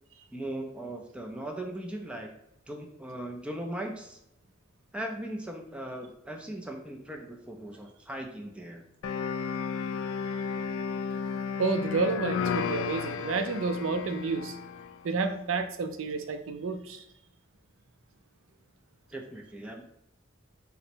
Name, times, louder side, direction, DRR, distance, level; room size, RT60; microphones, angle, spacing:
voice 1, 0.3-2.3 2.7-4.2 4.9-8.8 19.1-19.8, right 1 dB, 5° right, 2 dB, 0.4 m, -38 dB
sound 1, 9.0-15.0, left 6 dB, 90° left, 0.3 m, -33 dB
voice 2, 11.6-14.6 15.0-17.0, right 4 dB, 90° right, 8 dB, 0.5 m, -30 dB
3.9 x 2.1 x 4.3 m, 0.81 s
head